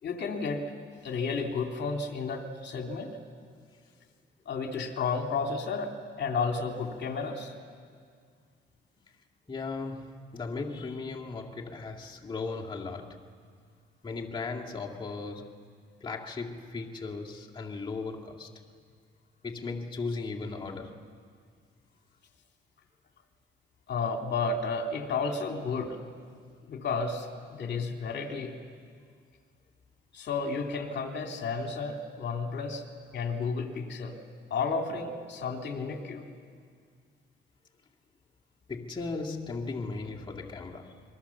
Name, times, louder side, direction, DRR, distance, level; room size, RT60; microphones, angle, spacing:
voice 1, 0.0-0.6 1.0-3.1 4.5-5.9 6.2-7.5 23.9-26.1 26.7-28.5 30.1-32.8 33.1-34.2 34.5-36.2, left 4 dB, 60° left, 2.8 m, -32 dB
voice 2, 9.5-13.3 14.0-15.7 16.0-18.5 19.4-21.0 38.7-41.0, left 4 dB, 25° left, 2.2 m, -37 dB
27.5 x 22.5 x 7.1 m
cardioid pair, 90°, 20 cm